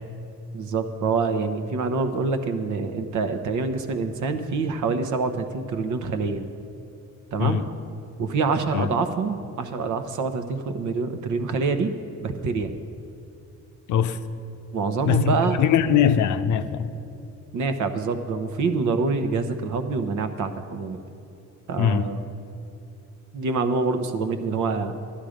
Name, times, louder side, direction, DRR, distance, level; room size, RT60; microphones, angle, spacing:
voice 1, 0.5-6.4 7.3-7.6 8.2-11.9 12.2-12.7 14.7-15.6 17.5-21.0 21.7-22.3 23.3-24.9, right 4 dB, 75° right, 0.9 m, -26 dB
voice 2, 15.1-16.9 21.8-22.0, left 8 dB, 75° left, 0.6 m, -21 dB
12.0 x 10.0 x 5.1 m
cardioid pair, 90°, 30 cm